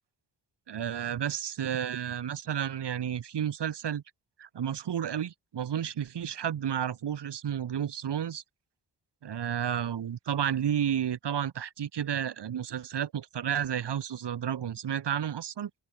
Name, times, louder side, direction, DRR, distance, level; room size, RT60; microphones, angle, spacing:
voice 1, 0.7-4.0 4.4-8.4 9.2-15.7, right 9 dB, 70° right, 3.0 m, -31 dB
open air
cardioid pair, 80°, 42 cm